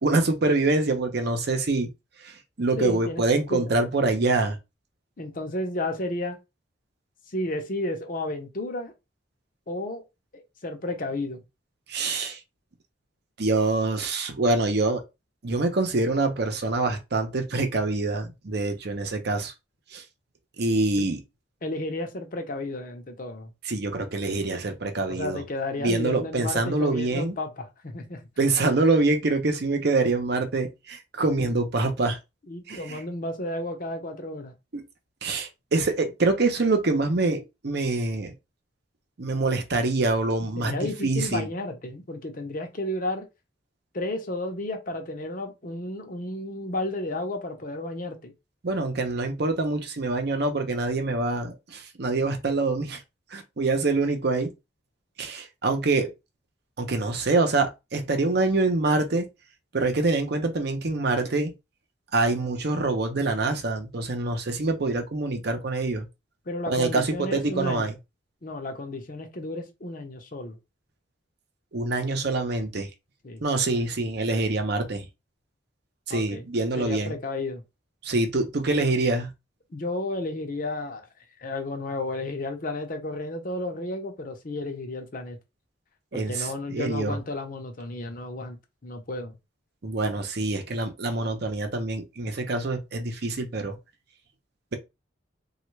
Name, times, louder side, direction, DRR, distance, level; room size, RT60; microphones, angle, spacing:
voice 1, 0.0-1.9 2.2-4.6 11.9-12.4 13.4-15.0 15.4-19.5 19.9-20.0 20.6-21.2 23.6-25.4 25.8-27.4 28.4-32.2 32.7-33.0 34.7-34.8 35.2-38.3 39.2-41.5 48.6-53.0 53.3-54.5 55.2-56.1 56.8-59.3 59.7-61.5 62.1-66.1 66.7-67.9 71.7-72.9 73.4-75.1 76.1-77.2 78.0-79.3 86.1-87.2 89.8-93.8, right 3 dB, 55° right, 0.7 m, -25 dB
voice 2, 2.8-3.2 3.5-3.8 5.2-6.4 7.3-8.9 9.7-10.0 10.3-11.4 21.0-21.1 21.6-23.5 25.1-28.2 31.2-31.5 32.5-34.5 40.6-43.2 43.9-48.3 66.5-67.9 68.4-70.6 73.2-73.4 76.1-76.5 76.8-77.6 79.7-81.1 81.4-85.4 86.1-88.6 88.8-89.4, left 2 dB, 45° left, 0.7 m, -32 dB
3.3 x 2.4 x 3.1 m
head